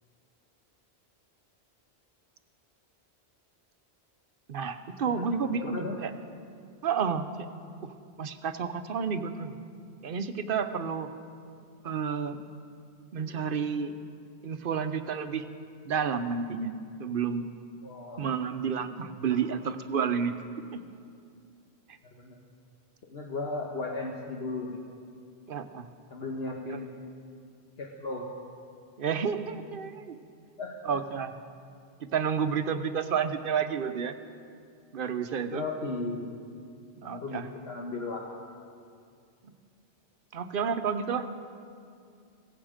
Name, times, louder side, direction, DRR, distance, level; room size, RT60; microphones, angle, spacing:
voice 1, 4.5-6.1 6.8-7.3 7.8-9.6 10.0-11.1 11.8-12.4 13.1-13.9 14.4-15.4 15.8-17.5 18.2-20.8 25.5-25.9 26.7-26.8 29.0-30.2 30.8-31.3 32.0-34.1 34.9-35.6 37.0-37.5 39.4-39.5 40.3-41.3, right 6 dB, 55° right, 10 dB, 0.9 m, -30 dB
voice 2, 5.5-6.0 17.8-18.3 19.3-19.4 22.0-22.4 23.1-24.8 26.1-26.9 27.8-28.3 30.6-30.8 35.5-36.4 37.1-38.3, left 3 dB, 65° left, 0 dB, 1.4 m, -36 dB
16.5 x 15.0 x 5.0 m, 2.4 s
omnidirectional pair, 1.1 m